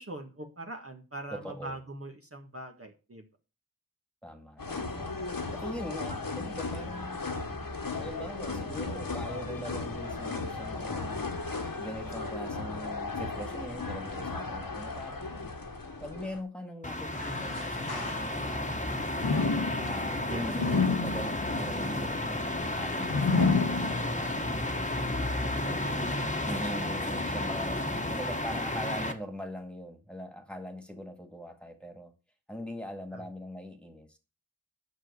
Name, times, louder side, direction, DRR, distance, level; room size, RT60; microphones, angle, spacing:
voice 1, 0.0-3.3 12.2-12.3 20.3-20.7 24.4-24.5 33.1-33.2, right 2 dB, 40° right, 1.7 m, -42 dB
voice 2, 1.3-1.8 4.2-5.1 5.5-7.2 8.0-11.4 11.8-15.3 16.0-19.1 19.7-24.5 25.3-25.9 26.5-32.1 32.5-34.2, equal, 5° left, 2.2 m, -41 dB
sound 1, 4.6-16.4, left 3 dB, 70° left, 1.7 m, -36 dB
sound 2, 16.8-29.1, left 1 dB, 20° left, 1.5 m, -32 dB
sound 3, 17.1-18.7 19.2-24.4 24.9-25.0 25.9-26.0, left 4 dB, 85° left, 1.4 m, -30 dB
9.2 x 6.5 x 6.8 m
wide cardioid pair, 50°, 36 cm